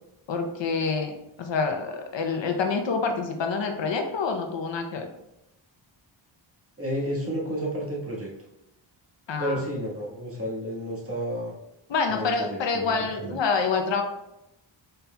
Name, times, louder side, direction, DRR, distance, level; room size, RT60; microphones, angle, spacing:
voice 1, 0.3-1.1 1.4-5.1 9.3-9.6 11.9-14.0, left 4 dB, 65° left, 5 dB, 0.7 m, -27 dB
voice 2, 6.8-8.3 9.4-11.5 12.1-13.4, equal, 30° right, -4 dB, 1.4 m, -31 dB
5.3 x 4.2 x 2.2 m, 0.87 s
wide cardioid pair, 95°, 48 cm